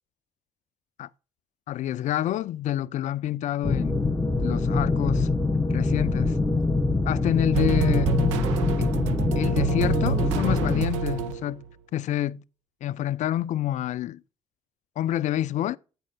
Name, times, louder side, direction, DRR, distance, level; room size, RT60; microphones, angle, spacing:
voice 1, 1.7-4.0 4.4-5.3 5.7-6.4 7.1-8.2 8.8-8.9 9.4-11.6 11.9-12.4 12.8-14.2 15.0-15.8, left 12 dB, 60° left, 0.4 m, -28 dB
sound 1, 3.6-10.9, left 3 dB, 15° left, 1.1 m, -24 dB
sound 2, 7.5-11.7, right 8 dB, 85° right, 0.5 m, -28 dB
8.7 x 4.1 x 5.5 m
hypercardioid pair, 50°, 14 cm